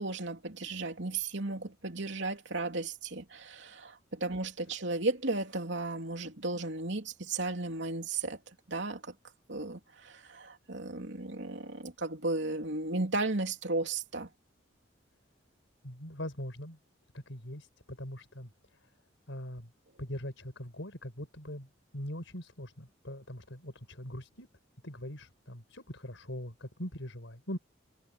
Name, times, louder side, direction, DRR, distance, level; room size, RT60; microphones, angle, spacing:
voice 1, 0.0-8.4 8.7-9.1 9.5-14.3, right 2 dB, 65° right, 3.0 m, -34 dB
voice 2, 15.8-16.8 17.1-18.8 19.3-19.7 20.0-21.7 21.9-24.5 24.8-27.6, left 1 dB, 75° left, 4.9 m, -42 dB
head